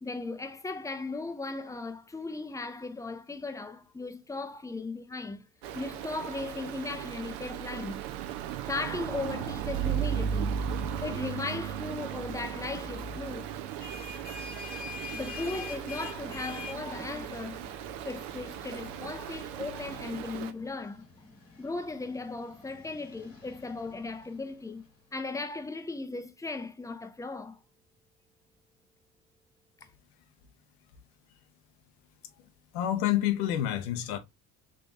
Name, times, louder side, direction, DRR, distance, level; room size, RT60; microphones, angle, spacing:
voice 1, 0.0-5.5 5.7-8.1 8.7-10.6 11.0-13.5 14.9-17.8 18.0-21.1 21.6-24.8 25.1-27.6, left 3 dB, 5° left, 0.5 m, -37 dB
Stream, 5.6-20.5, right 8 dB, 60° right, 0.7 m, -36 dB
sound 1, 13.5-24.9, left 4 dB, 90° left, 1.6 m, -46 dB
voice 2, 32.7-34.2, left 12 dB, 70° left, 0.9 m, -28 dB
3.7 x 3.4 x 2.5 m
figure-of-eight pair, 55°, 48 cm